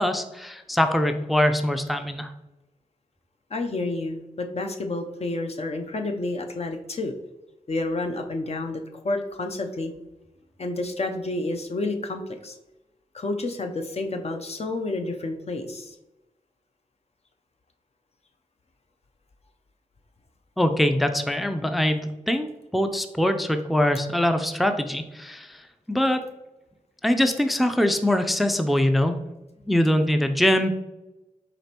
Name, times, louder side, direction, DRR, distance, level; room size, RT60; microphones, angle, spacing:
voice 1, 0.0-2.3 20.6-26.2 27.0-29.2 29.7-30.7, left 1 dB, ahead, 7 dB, 0.4 m, -23 dB
voice 2, 3.5-7.1 7.7-9.9 10.6-12.5 13.1-15.9, left 2 dB, 45° left, 4 dB, 0.6 m, -30 dB
5.0 x 3.0 x 2.9 m, 0.99 s
cardioid pair, 45°, 15 cm